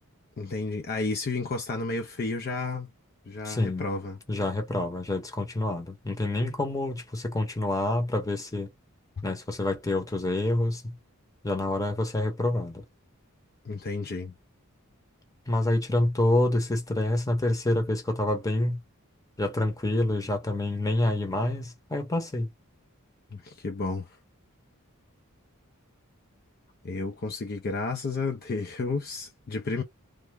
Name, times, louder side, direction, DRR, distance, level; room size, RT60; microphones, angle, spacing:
voice 1, 0.4-2.9 3.3-4.2 13.6-14.3 23.3-24.1 26.8-29.8, left 3 dB, 45° left, 0.4 m, -32 dB
voice 2, 3.4-3.9 4.3-8.7 9.2-10.9 11.4-12.8 15.5-18.8 19.4-22.5, left 1 dB, 15° left, 0.8 m, -27 dB
3.3 x 2.0 x 3.3 m
head